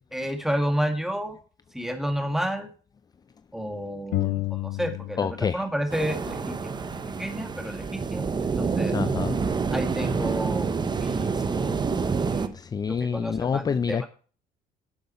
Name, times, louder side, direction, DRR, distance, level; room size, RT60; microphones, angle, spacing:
voice 1, 0.1-1.4 1.7-2.7 3.5-6.6 7.2-8.9 9.7-11.8 12.3-12.5 12.9-14.1, equal, ahead, 2.0 m, -31 dB
sound 1, 4.1-5.6 5.9-7.7, left 17 dB, 75° left, 0.7 m, -33 dB
voice 2, 5.2-5.6 8.9-9.4 12.5-14.0, left 6 dB, 25° left, 0.4 m, -27 dB
sound 2, 5.9-12.5, right 5 dB, 25° right, 0.9 m, -27 dB
11.0 x 7.9 x 4.3 m
cardioid pair, 110°, 17 cm